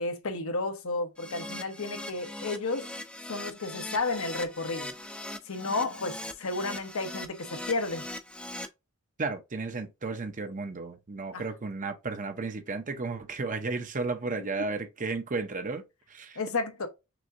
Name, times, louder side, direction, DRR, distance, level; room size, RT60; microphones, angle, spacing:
voice 1, 0.0-2.9 3.3-4.9 5.5-8.0 11.3-11.5 16.4-16.9, left 3 dB, 70° left, 1.0 m, -32 dB
Keyboard (musical), 1.2-8.7, left 1 dB, 5° left, 0.5 m, -40 dB
voice 2, 9.2-16.4, right 3 dB, 35° right, 0.7 m, -33 dB
6.1 x 2.7 x 2.5 m
head